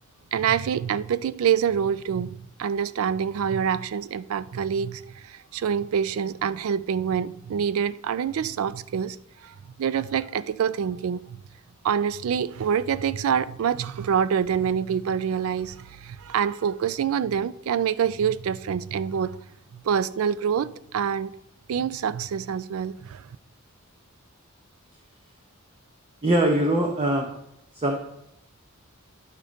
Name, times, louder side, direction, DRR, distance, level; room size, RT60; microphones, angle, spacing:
voice 1, 0.3-9.2 9.4-11.4 11.8-19.4 19.7-21.3 21.7-23.3, right 7 dB, 75° right, 0.3 m, -26 dB
voice 2, 26.2-27.3 27.7-28.0, right 1 dB, 25° right, 0.7 m, -22 dB
11.0 x 4.0 x 5.0 m
head